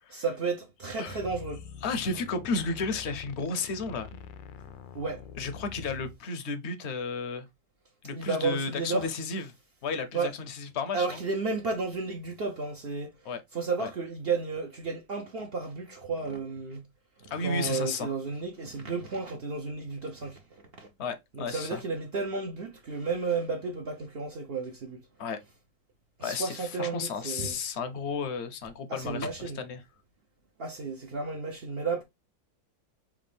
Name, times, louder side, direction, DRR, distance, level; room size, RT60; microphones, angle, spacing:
voice 1, 0.1-1.6 4.9-5.2 8.1-9.1 10.1-10.3 10.9-13.1 13.5-16.9 17.4-20.4 20.8-20.9 21.3-25.0 26.2-27.6 28.9-29.6 30.6-32.0, right 4 dB, 75° right, 0.5 m, -32 dB
voice 2, 0.9-1.3 1.8-4.1 5.4-7.5 8.0-9.5 9.8-11.2 13.2-13.4 13.8-13.9 17.3-18.1 21.0-21.8 25.2-25.4 26.2-29.8, left 4 dB, 60° left, 0.7 m, -33 dB
sound 1, 1.1-6.2, left 8 dB, 85° left, 1.3 m, -45 dB
6.1 x 2.4 x 3.3 m
omnidirectional pair, 2.0 m